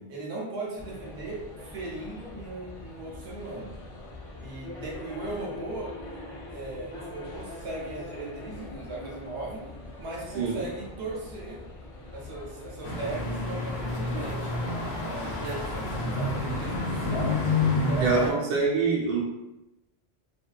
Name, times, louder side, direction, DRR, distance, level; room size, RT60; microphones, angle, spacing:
voice 1, 0.1-3.7 4.4-5.9 6.5-9.6 10.0-11.6 12.1-14.5 15.0-17.4 17.9-18.5, right 2 dB, 90° right, -3 dB, 1.0 m, -37 dB
sound 1, 0.8-17.5, left 2 dB, 55° left, 0.4 m, -43 dB
sound 2, 12.8-18.3, left 2 dB, 75° left, 0.8 m, -29 dB
voice 2, 18.0-19.2, right 4 dB, 60° right, -4 dB, 0.8 m, -25 dB
2.6 x 2.2 x 2.3 m, 0.95 s
omnidirectional pair, 1.1 m